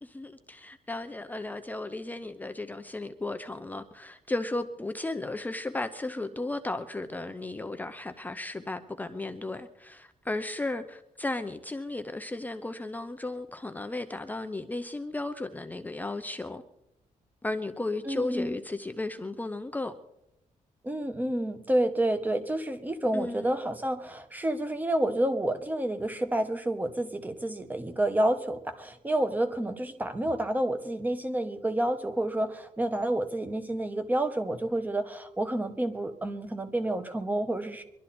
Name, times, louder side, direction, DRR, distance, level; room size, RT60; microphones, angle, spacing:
voice 1, 0.0-16.6 17.4-19.9 23.1-23.6, left 2 dB, 10° left, 0.6 m, -35 dB
voice 2, 18.1-18.6 20.8-37.8, right 1 dB, 10° right, 1.3 m, -29 dB
24.0 x 12.0 x 4.3 m
wide cardioid pair, 155°, 14 cm